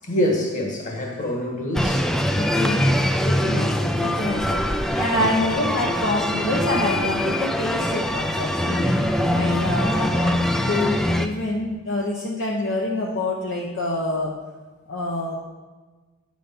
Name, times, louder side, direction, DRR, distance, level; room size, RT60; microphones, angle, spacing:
voice 1, 0.0-2.1 3.4-3.7 9.2-9.5, left 1 dB, 35° left, 0 dB, 1.8 m, -26 dB
sound 1, 1.7-11.3, equal, ahead, 0.4 m, -23 dB
voice 2, 2.3-9.0 9.3-14.3 14.9-15.4, left 2 dB, 60° left, -3 dB, 1.0 m, -27 dB
10.0 x 5.0 x 5.4 m, 1.3 s
head